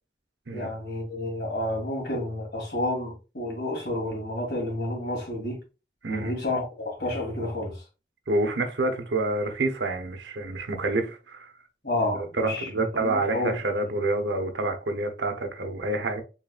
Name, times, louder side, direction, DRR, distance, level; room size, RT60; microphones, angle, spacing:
voice 1, 0.5-5.6 6.1-7.8 11.8-13.6, left 1 dB, 65° left, 1.9 m, -30 dB
voice 2, 8.3-11.5 12.1-16.2, right 2 dB, 80° right, 0.9 m, -28 dB
4.0 x 3.9 x 2.3 m
head